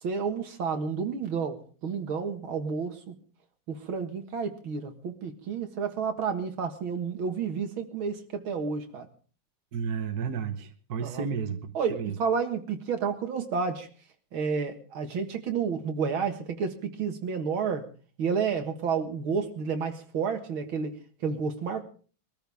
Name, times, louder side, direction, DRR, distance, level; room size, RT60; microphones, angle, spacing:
voice 1, 0.0-3.1 3.7-9.1 11.0-11.3 11.7-13.9 14.3-17.9 18.2-20.9 21.2-21.8, right 5 dB, 70° right, 6 dB, 2.4 m, -30 dB
voice 2, 9.7-12.1, right 6 dB, 50° right, 6 dB, 1.6 m, -32 dB
22.5 x 14.0 x 3.5 m, 0.40 s
omnidirectional pair, 2.3 m